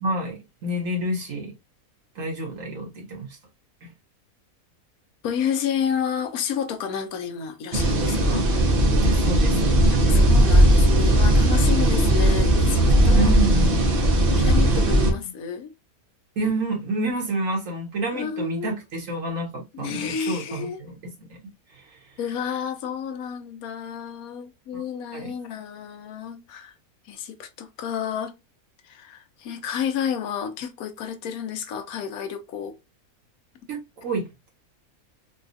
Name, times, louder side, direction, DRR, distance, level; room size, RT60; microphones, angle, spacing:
voice 1, 0.0-1.5 2.1-3.4 3.8-3.9 8.3-8.4 8.9-9.7 13.1-13.8 16.4-21.0 21.3-21.4 21.7-22.0 24.7-24.8 25.1-25.3 33.7-34.5, right 1 dB, 65° right, 1.6 m, -29 dB
voice 2, 5.2-8.4 9.9-13.3 14.4-15.7 18.1-18.7 19.7-20.8 22.2-26.7 27.0-28.3 28.8-32.8, left 7 dB, 80° left, 1.1 m, -30 dB
sound 1, 7.7-15.1, right 1 dB, 45° right, 0.8 m, -18 dB
4.0 x 2.3 x 2.5 m
omnidirectional pair, 1.5 m